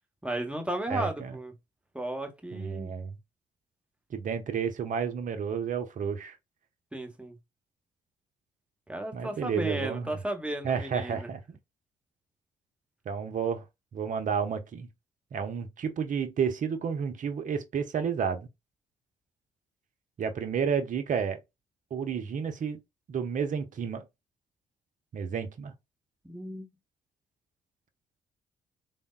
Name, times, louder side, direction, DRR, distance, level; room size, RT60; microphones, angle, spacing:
voice 1, 0.2-1.5 1.9-2.9 6.9-7.3 8.9-11.3 26.2-26.7, right 1 dB, 5° right, 1.0 m, -34 dB
voice 2, 0.9-1.4 2.5-3.2 4.1-6.4 9.1-10.2 10.6-11.6 13.1-13.6 13.9-14.9 15.3-18.5 20.2-21.4 21.9-22.8 23.1-24.0 25.1-25.7, right 6 dB, 50° right, 0.6 m, -31 dB
3.4 x 2.0 x 2.3 m
hypercardioid pair, 45°, 17 cm